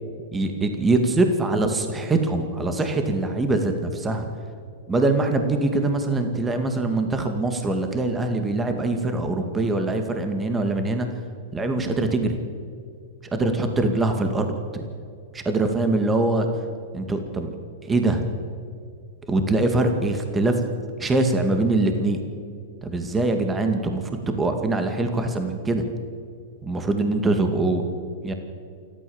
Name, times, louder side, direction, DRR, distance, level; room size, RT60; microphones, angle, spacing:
voice 1, 0.3-4.3 4.9-11.1 11.5-12.4 13.3-14.8 15.3-16.5 16.9-17.5 17.8-18.3 19.3-20.6 21.0-22.2 22.8-25.8 26.6-27.8 28.2-28.3, right 2 dB, 15° right, 5 dB, 2.2 m, -23 dB
28.5 x 13.0 x 7.2 m, 2.3 s
hypercardioid pair, 120°, 0 cm